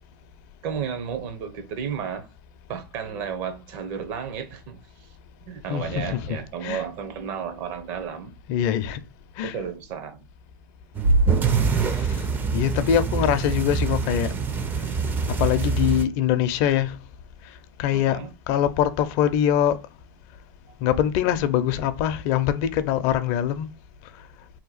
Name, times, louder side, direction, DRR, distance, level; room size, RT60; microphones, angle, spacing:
voice 1, 0.6-2.3 2.7-4.8 5.5-8.3 9.4-10.3 13.1-13.2 17.9-18.3, right 7 dB, 55° right, 0.8 m, -33 dB
voice 2, 5.7-6.9 8.5-9.0 9.4-9.6 11.9-12.2 12.5-14.3 15.4-17.0 17.8-19.8 20.8-23.7, left 10 dB, 50° left, 0.5 m, -23 dB
sound 1, 11.0-16.1, right 5 dB, 20° right, 0.4 m, -25 dB
Bass drum, 11.0-12.7, right 1 dB, 80° right, 1.5 m, -24 dB
2.8 x 2.2 x 4.0 m
hypercardioid pair, 115°, 11 cm